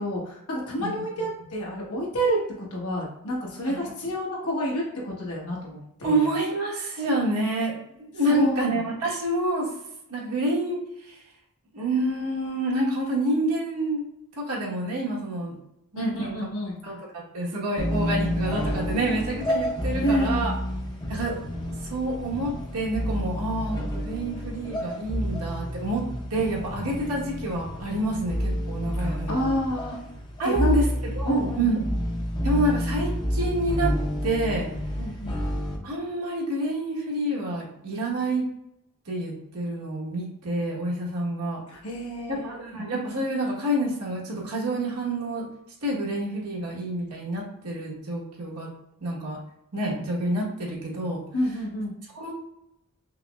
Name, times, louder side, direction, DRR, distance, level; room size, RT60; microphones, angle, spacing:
voice 1, 0.0-6.3 8.4-8.8 16.0-17.0 19.9-20.6 29.0-30.0 30.4-30.7 31.2-31.7 35.0-35.4 41.7-42.7 51.3-51.9, equal, 75° left, -3 dB, 1.1 m, -29 dB
voice 2, 6.0-9.7 10.1-10.8 11.7-14.0 14.4-15.5 15.9-16.3 16.8-20.5 21.1-21.4 21.9-29.5 30.4-32.0 32.4-33.9 34.2-34.7 35.8-38.4 39.1-41.6 42.3-45.5 45.8-48.7 49.0-49.4 49.7-51.2 52.2-52.3, right 1 dB, 80° right, -3 dB, 1.2 m, -28 dB
sound 1, 17.8-35.8, equal, 20° left, 0.6 m, -29 dB
5.5 x 2.0 x 2.3 m, 0.80 s
head